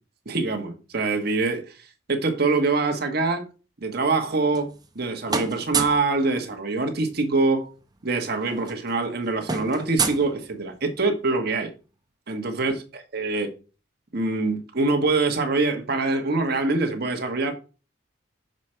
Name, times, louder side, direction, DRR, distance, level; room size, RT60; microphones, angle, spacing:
voice 1, 0.2-3.5 3.8-7.7 8.0-11.7 12.3-13.5 14.1-17.5, right 3 dB, 50° right, 1.3 m, -24 dB
sound 1, 4.2-5.0 5.3-6.1 7.5-7.6 7.8-8.0 8.3-10.9, right 4 dB, 20° right, 0.8 m, -30 dB
6.5 x 5.1 x 4.4 m
head